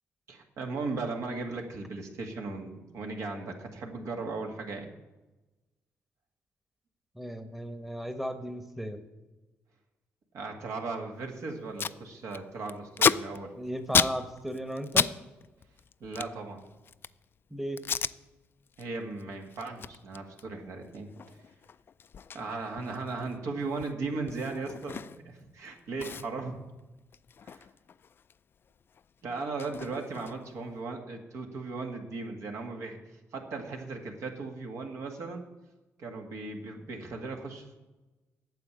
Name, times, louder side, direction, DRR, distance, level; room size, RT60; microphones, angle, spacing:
voice 1, 0.3-4.9 10.3-13.5 16.0-16.7 18.8-21.1 22.3-26.6 27.4-27.7 29.2-33.0 33.3-35.4 36.0-37.8, right 3 dB, 75° right, 2 dB, 1.8 m, -37 dB
voice 2, 7.1-9.0 13.6-15.1 17.5-17.8, equal, 5° right, 7 dB, 1.0 m, -35 dB
Packing tape duct tape, 11.2-11.3 11.5-12.0 12.3-15.2 15.4-17.2 17.8-18.2 18.6-18.8 19.2-25.4 25.7-25.8 26.0-28.4 28.6-30.6, left 7 dB, 45° left, 0.3 m, -32 dB
9.2 x 7.2 x 8.4 m, 1.1 s
cardioid pair, 95°, 5 cm